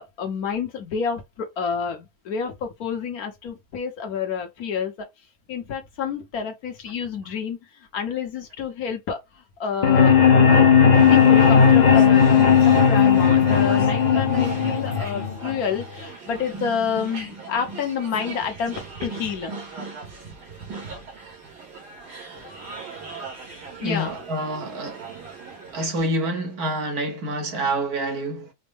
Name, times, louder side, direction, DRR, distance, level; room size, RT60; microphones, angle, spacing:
voice 1, 0.0-5.1 5.5-7.6 7.9-10.2 11.1-19.5 22.3-22.5 23.8-24.1, left 6 dB, 65° left, 1.4 m, -29 dB
sound 1, 9.8-15.8, left 7 dB, 90° left, 0.4 m, -16 dB
sound 2, 10.9-26.0, right 4 dB, 90° right, 2.4 m, -38 dB
voice 2, 23.8-25.1 25.7-28.5, right 1 dB, 65° right, 1.6 m, -27 dB
5.2 x 2.2 x 3.4 m
omnidirectional pair, 1.7 m